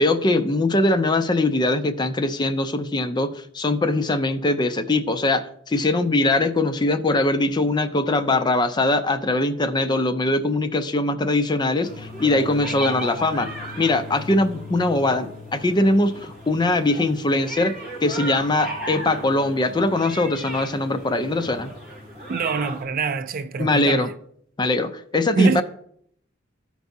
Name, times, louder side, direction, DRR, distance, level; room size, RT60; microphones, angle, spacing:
voice 1, 0.0-13.5 13.8-17.7 18.0-21.7 23.6-24.1 24.6-25.6, left 2 dB, 20° left, 0.5 m, -21 dB
sound 1, 11.8-22.8, equal, ahead, 3.5 m, -36 dB
voice 2, 22.3-24.1 25.4-25.6, right 5 dB, 45° right, 0.4 m, -24 dB
13.5 x 4.6 x 2.7 m
head